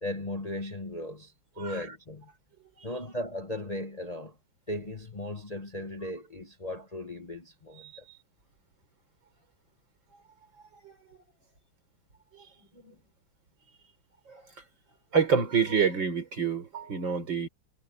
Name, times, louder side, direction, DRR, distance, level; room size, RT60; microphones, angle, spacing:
voice 1, 0.0-2.3 2.8-4.4 4.7-7.9, left 1 dB, 20° left, 1.3 m, -37 dB
voice 2, 15.1-17.5, right 6 dB, 65° right, 4.7 m, -28 dB
omnidirectional pair, 2.2 m